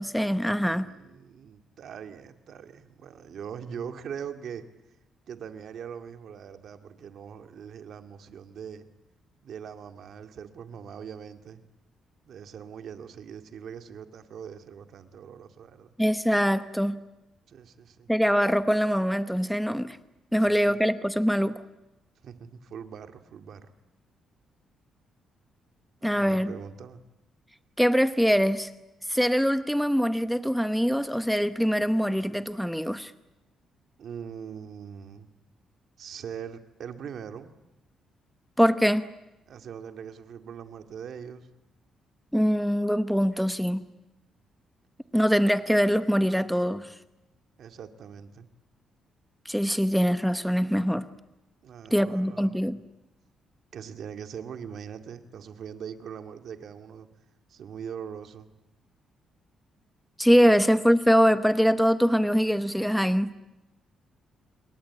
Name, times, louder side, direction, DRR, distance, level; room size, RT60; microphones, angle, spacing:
voice 1, 0.0-0.9 16.0-17.0 18.1-20.0 20.3-21.6 26.0-26.5 27.8-28.7 29.1-33.1 38.6-39.0 42.3-43.8 45.1-46.9 49.4-51.0 51.9-52.8 60.2-63.3, equal, ahead, 11 dB, 0.9 m, -23 dB
voice 2, 0.6-4.6 5.3-8.9 9.4-11.6 12.3-15.9 17.5-18.1 20.5-20.8 22.2-23.6 26.1-27.0 34.0-35.3 36.0-37.5 39.5-41.5 47.6-48.5 51.6-52.7 53.7-57.1 57.5-58.5 60.5-60.6, right 7 dB, 60° right, 7 dB, 2.1 m, -41 dB
28.0 x 22.5 x 8.7 m, 0.99 s
cardioid pair, 145°, 0 cm